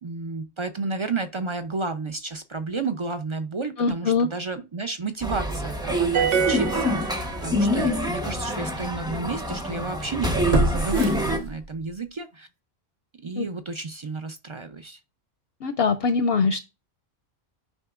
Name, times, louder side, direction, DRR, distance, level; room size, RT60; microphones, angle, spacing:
voice 1, 0.0-12.5 13.2-15.0, right 4 dB, 50° right, 0.3 m, -32 dB
voice 2, 3.8-4.3 13.4-13.5 15.6-16.7, left 4 dB, 65° left, 0.7 m, -22 dB
sound 1, 5.2-11.4, equal, 5° right, 0.8 m, -26 dB
sound 2, 6.1-7.9, right 7 dB, 75° right, 1.1 m, -26 dB
sound 3, 7.2-7.4 7.9-8.0 10.5-12.0 12.3-12.4, right 1 dB, 35° right, 0.8 m, -26 dB
8.9 x 5.6 x 2.4 m
omnidirectional pair, 1.3 m